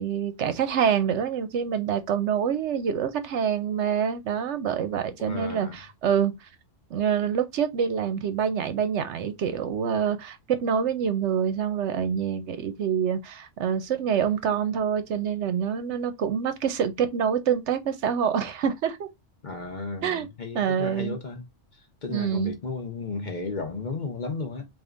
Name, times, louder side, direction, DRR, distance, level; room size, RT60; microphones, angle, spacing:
voice 1, 0.0-6.3 6.9-19.1 20.0-20.3 20.5-21.2 22.1-22.6, right 8 dB, 70° right, 0.9 m, -26 dB
voice 2, 5.2-5.8 19.4-21.4 21.7-24.7, left 3 dB, 45° left, 0.9 m, -34 dB
3.5 x 2.6 x 3.7 m
omnidirectional pair, 1.3 m